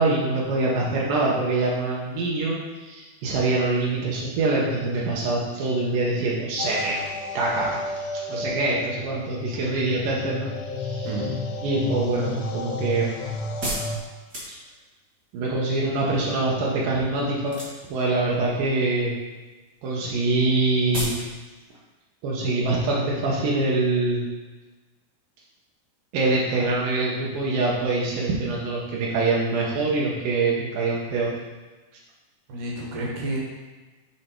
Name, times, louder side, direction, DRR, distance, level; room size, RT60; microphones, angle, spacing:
voice 1, 0.0-7.0 7.3-7.8 8.1-10.5 10.8-11.1 11.6-13.2 15.3-17.6 17.9-19.1 19.8-21.1 22.2-24.2 26.1-31.3, right 2 dB, 90° right, -5 dB, 1.8 m, -24 dB
sound 1, 6.6-14.0, left 2 dB, 85° left, 2.9 m, -32 dB
voice 2, 11.0-11.4 32.5-33.4, right 1 dB, 70° right, -2 dB, 2.0 m, -30 dB
sound 2, 12.0-15.0 17.4-18.0 18.4-18.9 19.2-19.4 19.7-19.8 20.0-20.1 20.4-20.5 20.9-21.3 21.6-21.7, right 1 dB, 50° right, 1.1 m, -32 dB
9.4 x 3.3 x 4.4 m, 1.2 s
omnidirectional pair, 5.3 m